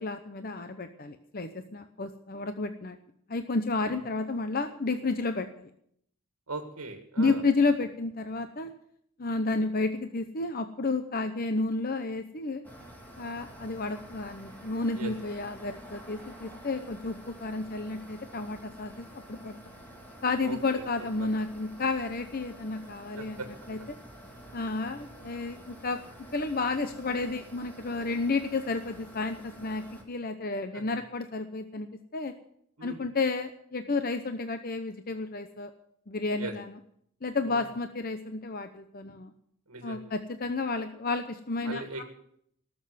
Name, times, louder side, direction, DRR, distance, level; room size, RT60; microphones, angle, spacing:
voice 1, 0.0-3.0 3.3-5.7 7.2-8.7 9.2-12.6 13.2-19.6 20.2-23.4 23.7-24.0 24.5-31.9 32.1-32.3 32.8-35.7 36.1-36.7 37.2-39.3 39.8-42.0, left 3 dB, 45° left, 8 dB, 0.8 m, -31 dB
voice 2, 6.5-7.4 14.9-15.1 20.4-21.3 23.2-23.5 30.7-30.8 32.8-33.0 36.4-36.5 37.4-37.6 39.7-40.1 41.6-42.0, right 3 dB, 75° right, 4 dB, 1.8 m, -39 dB
sound 1, 12.6-30.0, equal, 10° left, 2.6 m, -49 dB
18.5 x 7.2 x 9.5 m, 0.71 s
head